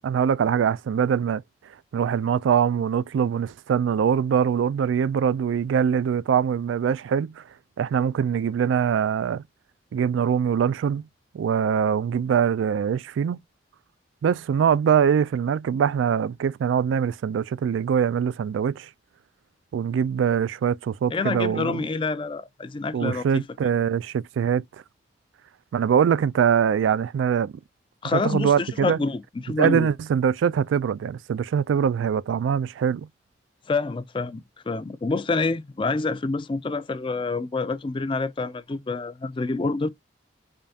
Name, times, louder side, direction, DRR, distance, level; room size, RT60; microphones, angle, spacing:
voice 1, 0.0-1.4 1.9-7.4 7.8-9.4 9.9-11.1 11.3-13.4 14.2-18.9 19.7-21.8 22.9-24.6 25.7-27.5 28.1-29.0 29.6-33.1, right 7 dB, 85° right, 0.3 m, -23 dB
voice 2, 21.1-23.4 28.0-29.9 33.7-39.9, left 3 dB, 25° left, 0.4 m, -27 dB
5.0 x 2.3 x 2.7 m
head